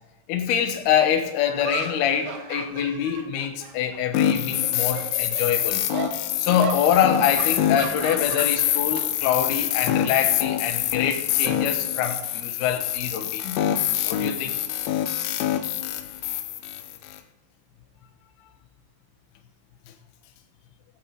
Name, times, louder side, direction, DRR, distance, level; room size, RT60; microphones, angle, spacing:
voice 1, 0.3-5.8 6.4-13.6 14.0-14.6, left 9 dB, 70° left, 2.9 m, -25 dB
sound 1, 0.7-0.8 1.6-4.2 4.5-5.5 5.9-6.2 6.6-6.8 7.4-9.1 9.4-9.6 10.8-12.3, right 6 dB, 80° right, 3.6 m, -36 dB
sound 2, 4.1-17.2, left 11 dB, 85° left, 3.2 m, -26 dB
19.0 x 8.5 x 3.3 m
omnidirectional pair, 5.3 m